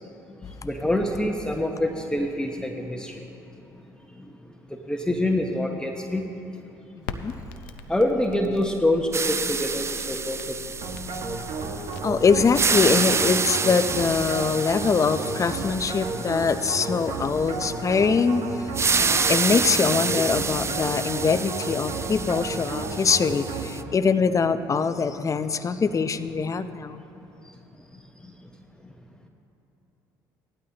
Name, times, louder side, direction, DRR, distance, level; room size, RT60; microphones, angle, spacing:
voice 1, 0.6-3.2 4.9-6.2 7.9-10.6, left 1 dB, 10° left, 2 dB, 1.1 m, -25 dB
Crackle, 7.0-12.8, left 3 dB, 85° left, 0.6 m, -42 dB
sound 1, 9.1-12.1 12.4-17.2 18.7-23.8, right 4 dB, 25° right, 0.6 m, -28 dB
sound 2, 10.8-24.0, right 3 dB, 60° right, 1.5 m, -33 dB
voice 2, 12.0-27.0, left 5 dB, 30° left, 11 dB, 0.6 m, -23 dB
17.5 x 12.0 x 2.9 m, 3.0 s
hypercardioid pair, 65°, 10 cm